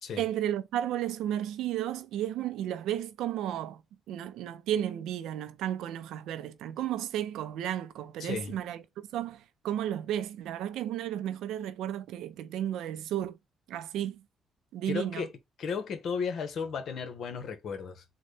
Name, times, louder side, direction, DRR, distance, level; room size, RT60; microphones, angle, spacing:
voice 1, 0.2-3.8 4.1-8.8 9.1-13.4 13.7-14.2 14.7-15.3, right 11 dB, 85° right, 0.4 m, -33 dB
voice 2, 8.2-8.5 14.9-15.3 15.6-18.0, left 6 dB, 65° left, 1.0 m, -34 dB
3.9 x 2.2 x 3.2 m
cardioid pair, 90°, 0 cm